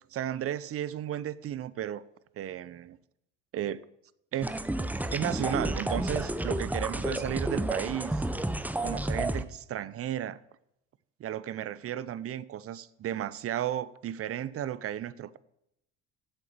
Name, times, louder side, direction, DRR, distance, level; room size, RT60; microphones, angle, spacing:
voice 1, 0.1-2.0 2.4-3.0 3.5-3.8 4.3-4.6 5.1-8.3 8.8-10.4 11.2-15.4, right 11 dB, 40° right, 0.7 m, -34 dB
sound 1, 4.4-9.4, right 1 dB, 5° right, 0.7 m, -31 dB
8.0 x 7.9 x 7.4 m
hypercardioid pair, 65°, 35 cm